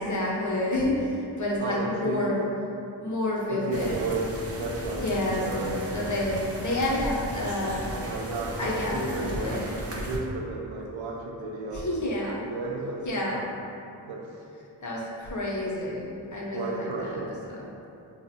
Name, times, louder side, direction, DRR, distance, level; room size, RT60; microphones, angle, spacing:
voice 1, 0.0-2.4 3.0-4.0 5.0-7.9 8.6-9.0 9.3-9.8 11.7-12.4 13.0-13.5 14.8-17.2 17.5-17.6, left 1 dB, 45° left, -4 dB, 0.6 m, -29 dB
voice 2, 1.6-2.4 3.5-4.3 4.6-5.0 5.4-5.7 7.9-11.9 12.4-13.0 14.0-14.3 16.5-17.4, right 3 dB, 85° right, -1 dB, 0.5 m, -33 dB
sound 1, 3.7-10.2, right 1 dB, 35° right, 0.4 m, -36 dB
3.4 x 2.0 x 2.7 m, 2.7 s
wide cardioid pair, 55°, 45 cm